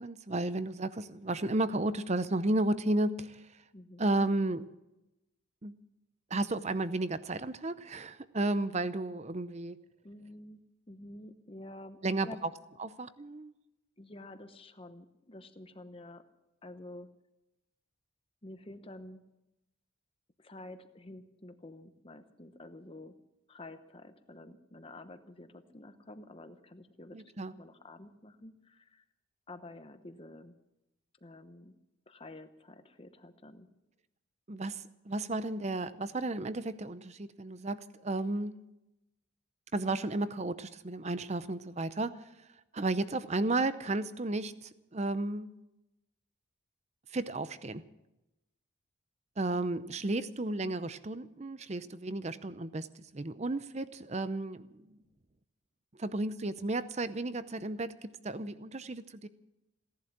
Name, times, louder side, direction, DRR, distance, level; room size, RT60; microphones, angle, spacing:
voice 1, 0.0-3.4 4.0-4.7 5.6-5.8 6.3-9.8 12.0-12.3 12.8-13.5 27.1-27.5 34.5-38.6 39.7-42.2 42.7-45.5 47.1-47.8 49.4-52.9 53.1-55.0 55.9-59.3, right 2 dB, 30° right, 14 dB, 0.6 m, -33 dB
voice 2, 10.0-10.6 10.9-12.4 14.0-16.2 16.6-17.1 18.4-19.2 20.4-23.2 23.5-29.0 29.5-30.5 31.2-31.7 32.1-33.7 49.8-50.0, left 2 dB, 25° left, 10 dB, 0.9 m, -49 dB
17.0 x 11.5 x 7.3 m, 0.94 s
head